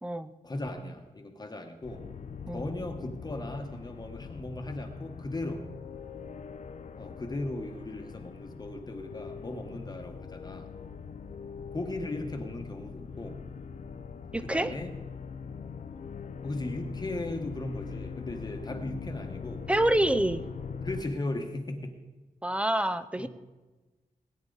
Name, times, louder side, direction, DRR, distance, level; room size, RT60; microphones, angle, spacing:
voice 1, 0.4-2.1 2.5-5.7 6.9-10.7 11.7-13.4 14.4-14.9 16.4-19.7 20.8-22.0 23.2-23.3, left 2 dB, 30° left, 4 dB, 1.2 m, -37 dB
sound 1, 1.8-21.0, left 6 dB, 60° left, 0.6 m, -42 dB
voice 2, 14.3-14.7 19.7-20.4 22.4-23.3, right 1 dB, 10° right, 13 dB, 0.5 m, -27 dB
18.0 x 9.8 x 4.0 m, 1.2 s
wide cardioid pair, 150°, 14 cm